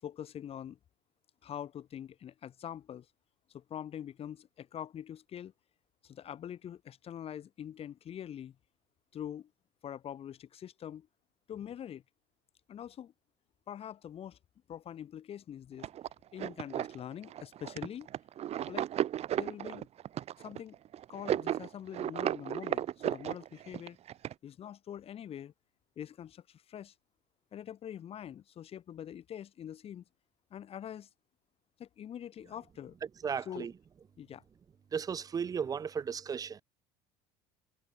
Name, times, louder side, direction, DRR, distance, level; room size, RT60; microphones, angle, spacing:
voice 1, 0.0-0.8 1.4-3.1 3.5-5.5 6.0-8.6 9.1-9.5 9.8-11.1 11.5-12.0 12.7-13.1 13.7-14.4 14.7-15.9 16.3-18.1 18.7-18.9 19.3-19.9 20.4-20.8 21.1-24.0 24.4-25.5 26.0-26.9 27.5-30.0 30.5-31.1 31.8-33.0 33.4-33.7 34.2-34.4, left 10 dB, 40° left, 4.5 m, -44 dB
sound 1, 15.8-24.3, right 11 dB, 45° right, 2.5 m, -34 dB
voice 2, 33.2-33.7 34.9-36.6, right 7 dB, 25° right, 0.5 m, -35 dB
supercardioid pair, 95°, 15 cm